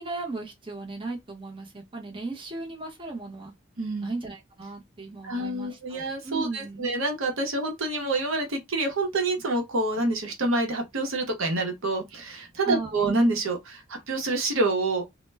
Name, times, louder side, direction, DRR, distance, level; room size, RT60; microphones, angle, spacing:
voice 1, 0.0-3.5 4.0-6.9 12.6-13.1, right 3 dB, 25° right, 0.8 m, -36 dB
voice 2, 3.8-4.1 5.2-15.0, right 2 dB, 80° right, 0.8 m, -27 dB
2.1 x 2.1 x 3.2 m
head